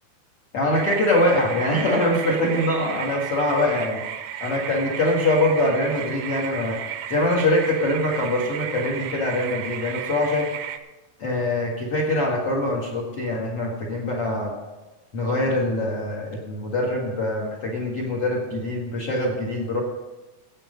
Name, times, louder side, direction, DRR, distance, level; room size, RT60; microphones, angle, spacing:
voice 1, 0.5-4.0 4.4-6.8 7.1-10.5 11.2-14.5 15.1-19.8, left 1 dB, 55° left, -1 dB, 1.7 m, -23 dB
sound 1, 0.7-10.8, right 9 dB, 90° right, 2.2 m, -34 dB
15.5 x 9.1 x 5.3 m, 1.1 s
omnidirectional pair, 5.7 m